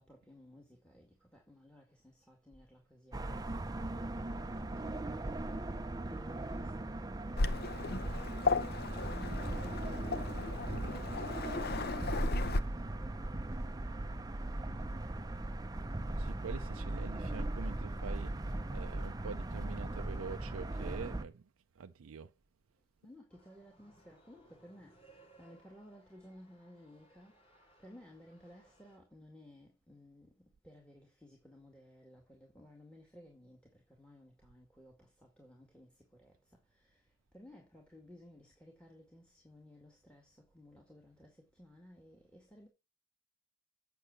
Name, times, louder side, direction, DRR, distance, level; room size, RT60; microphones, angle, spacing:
voice 1, 0.0-5.6 6.1-8.5 9.1-13.9 14.2-15.7 23.0-24.9 25.4-27.3 27.8-30.3 30.6-35.9 36.2-36.3 36.8-37.0 37.3-42.7, left 1 dB, 5° left, 2.0 m, -57 dB
sound 1, 3.1-21.2, right 1 dB, 20° right, 0.6 m, -39 dB
Waves surf, 7.4-12.6, left 3 dB, 50° left, 0.7 m, -35 dB
voice 2, 16.2-21.5 21.8-22.3, right 5 dB, 75° right, 0.5 m, -45 dB
sound 2, 23.3-29.0, right 2 dB, 30° left, 5.7 m, -65 dB
8.3 x 6.9 x 6.5 m
head